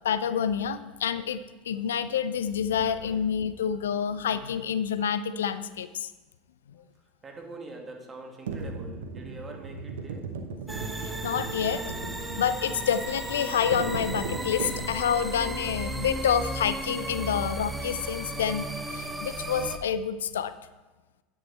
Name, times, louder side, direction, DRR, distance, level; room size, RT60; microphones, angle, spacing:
voice 1, 0.0-1.4 1.7-6.1 11.0-11.8 12.4-20.5, left 8 dB, 75° left, 13 dB, 0.4 m, -28 dB
voice 2, 6.7-10.3, right 2 dB, 25° right, 2 dB, 2.0 m, -44 dB
sound 1, 8.5-15.2, right 4 dB, 75° right, 0.9 m, -37 dB
sound 2, 10.7-19.8, right 1 dB, 5° right, 1.0 m, -35 dB
9.5 x 7.6 x 4.3 m, 1.2 s
figure-of-eight pair, 80°, 0 cm